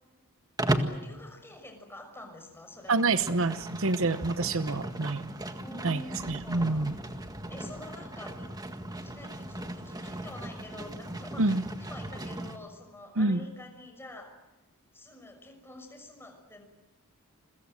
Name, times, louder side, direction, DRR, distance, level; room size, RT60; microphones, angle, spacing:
Livestock farm animals working animals, 0.6-1.0 2.8-12.6, right 1 dB, 15° right, 1.8 m, -36 dB
voice 1, 0.9-3.3 5.5-6.9 7.5-8.5 8.9-14.3 14.9-16.6, left 1 dB, 10° left, 5 dB, 5.8 m, -47 dB
voice 2, 2.9-5.3 5.8-6.0 6.3-6.9 11.4-11.6 13.2-13.5, right 3 dB, 60° right, 12 dB, 1.0 m, -27 dB
30.0 x 23.0 x 7.7 m, 1.0 s
head